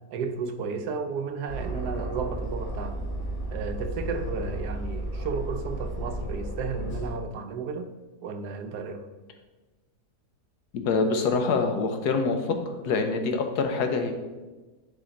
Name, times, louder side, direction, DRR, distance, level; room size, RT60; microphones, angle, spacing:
voice 1, 0.1-3.0 3.5-7.9 8.2-9.0, right 5 dB, 80° right, 1.2 m, -33 dB
Aircraft, 1.5-7.1, right 1 dB, 60° left, 1.7 m, -33 dB
voice 2, 10.7-12.5 12.8-14.1, left 4 dB, 75° left, 1.3 m, -25 dB
10.5 x 4.1 x 4.0 m
omnidirectional pair, 1.8 m